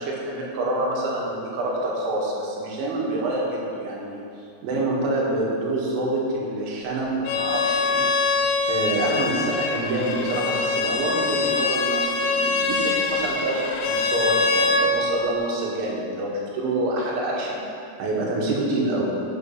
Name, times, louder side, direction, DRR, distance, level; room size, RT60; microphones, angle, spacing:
voice 1, 0.0-8.2 8.7-17.7 18.0-19.2, right 2 dB, 90° right, -3 dB, 4.0 m, -27 dB
Bowed string instrument, 7.2-14.9, left 4 dB, 75° left, 2.7 m, -24 dB
8.9 x 7.8 x 5.4 m, 2.5 s
omnidirectional pair, 5.3 m